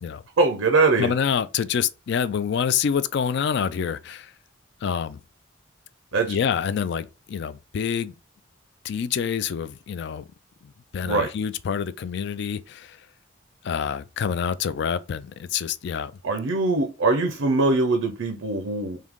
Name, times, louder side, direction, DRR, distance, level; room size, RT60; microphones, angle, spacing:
voice 1, 0.4-1.1 6.1-6.4 11.0-11.3 16.2-19.0, right 3 dB, 90° right, 0.6 m, -22 dB
voice 2, 1.0-4.3 4.8-5.2 6.3-8.1 8.8-10.2 10.6-13.0 13.6-16.1, left 7 dB, 60° left, 0.3 m, -27 dB
3.7 x 2.7 x 3.6 m
head